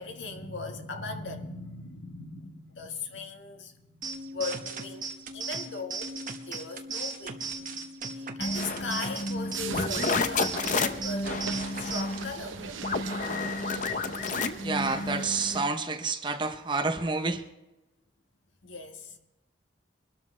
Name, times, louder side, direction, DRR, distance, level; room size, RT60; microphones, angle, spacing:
voice 1, 0.0-6.2 6.4-12.6 18.6-19.2, left 3 dB, 70° left, 1.6 m, -39 dB
sound 1, 4.0-12.0, right 4 dB, 40° right, 1.2 m, -37 dB
sound 2, 8.4-15.7, left 3 dB, 40° left, 0.7 m, -31 dB
sound 3, 9.5-15.6, right 5 dB, 80° right, 0.9 m, -40 dB
voice 2, 14.6-17.4, right 3 dB, 25° right, 0.7 m, -29 dB
22.5 x 12.5 x 3.3 m
head